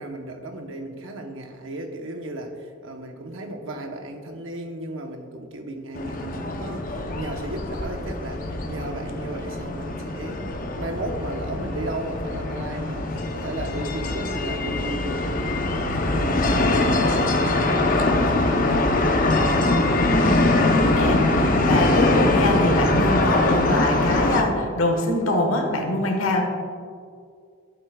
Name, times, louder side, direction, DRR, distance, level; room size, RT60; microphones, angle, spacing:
voice 1, 0.0-20.7, right 1 dB, 75° right, 4 dB, 0.9 m, -35 dB
sound 1, 5.9-24.4, left 2 dB, 40° left, 0.7 m, -23 dB
voice 2, 20.1-26.4, left 1 dB, 85° left, 2 dB, 1.3 m, -24 dB
12.5 x 8.0 x 2.3 m, 2.1 s
head